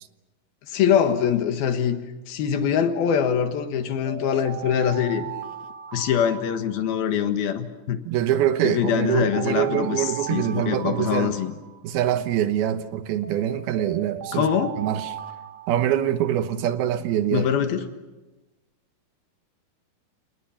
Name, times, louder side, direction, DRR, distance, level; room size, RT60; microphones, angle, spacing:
voice 1, 0.7-2.0 2.3-5.3 5.9-8.0 8.6-11.5 14.3-14.8 17.3-17.9, left 8 dB, 80° left, 3.4 m, -23 dB
sound 1, 4.0-7.2 8.4-12.1 13.2-16.5, right 10 dB, 55° right, 2.4 m, -38 dB
voice 2, 8.1-11.4 11.8-14.5 14.8-15.1 15.7-17.5, right 11 dB, 90° right, 3.1 m, -24 dB
29.5 x 28.0 x 5.8 m
omnidirectional pair, 4.3 m